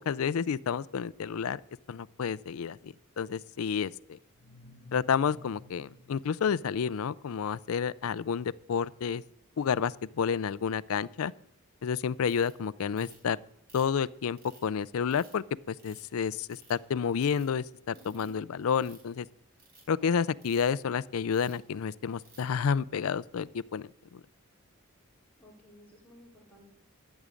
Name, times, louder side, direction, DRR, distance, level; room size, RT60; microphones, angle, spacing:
voice 1, 0.1-1.6 1.9-4.2 4.9-9.2 9.6-11.3 11.8-13.4 13.7-19.3 19.9-24.2, left 6 dB, 75° left, 0.4 m, -30 dB
sound 1, 4.3-8.0, left 2 dB, 50° left, 1.1 m, -53 dB
Ratchet pawl, 12.3-12.5 13.0-13.3 13.7-14.6 15.1-15.3 15.8-16.1 16.5-16.8 17.2-17.4 17.9-18.3 18.7-19.1 19.5-19.8 20.4-20.7 21.3-21.6 22.2-22.5, right 4 dB, 45° right, 4.5 m, -57 dB
voice 2, 17.9-18.3 25.4-26.6, left 1 dB, 10° left, 4.4 m, -55 dB
14.0 x 6.3 x 8.3 m
head